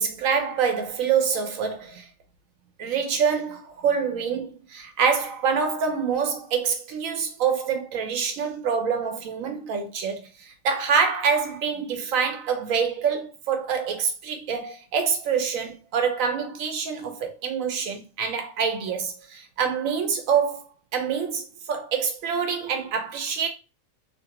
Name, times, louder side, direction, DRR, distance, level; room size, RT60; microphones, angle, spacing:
voice 1, 0.0-2.1 2.8-20.6 20.9-23.5, right 6 dB, 80° right, 1.1 m, -26 dB
2.8 x 2.6 x 2.8 m
omnidirectional pair, 1.4 m